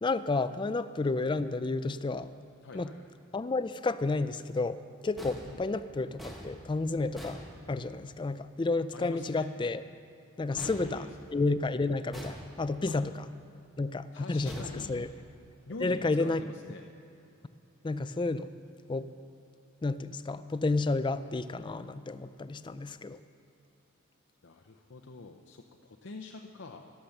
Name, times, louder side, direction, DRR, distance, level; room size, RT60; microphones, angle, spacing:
voice 1, 0.0-2.3 2.7-2.9 3.3-7.4 7.7-9.8 10.4-11.1 11.3-13.1 13.8-15.1 15.8-16.4 17.8-18.5 18.9-19.1 19.8-23.2, left 3 dB, 25° left, 13 dB, 0.4 m, -31 dB
voice 2, 2.6-3.1 5.4-5.6 8.9-9.5 10.5-11.3 12.9-13.0 14.1-15.1 15.7-16.9 24.4-26.9, left 3 dB, 60° left, 3 dB, 0.7 m, -45 dB
sound 1, 5.2-8.2 10.6-11.6 12.1-12.9 14.4-15.5, equal, ahead, 1.7 m, -47 dB
13.0 x 11.5 x 6.6 m, 2.6 s
head